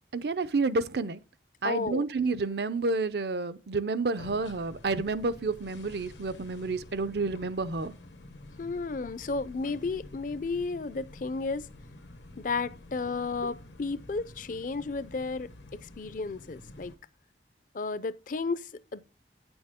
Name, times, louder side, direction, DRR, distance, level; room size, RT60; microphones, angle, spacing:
voice 1, 0.1-1.2 1.6-7.9, right 3 dB, 65° right, 0.6 m, -30 dB
voice 2, 1.6-2.0 8.6-11.7 12.4-15.5 15.8-16.9 17.7-19.0, left 4 dB, 45° left, 0.5 m, -33 dB
sound 1, 4.2-17.0, left 1 dB, 80° left, 1.2 m, -49 dB
9.5 x 7.1 x 3.6 m
head